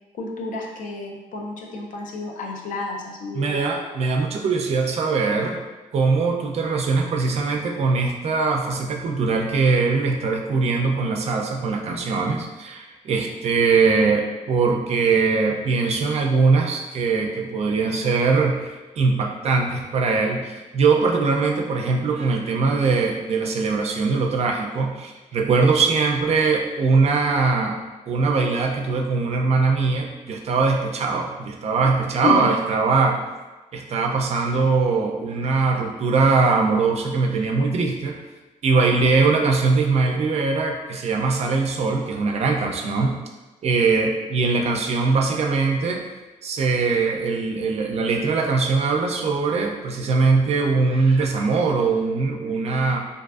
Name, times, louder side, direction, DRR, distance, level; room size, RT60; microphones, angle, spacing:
voice 1, 0.1-3.6 32.2-32.6 38.7-38.9, left 3 dB, 70° left, 0 dB, 0.5 m, -29 dB
voice 2, 3.3-5.6 5.9-27.8 28.1-33.2 33.7-38.2 38.6-43.2 43.6-46.0 46.4-53.0, right 4 dB, 50° right, 2 dB, 0.4 m, -21 dB
2.6 x 2.4 x 2.3 m, 1.2 s
cardioid pair, 105°, 14 cm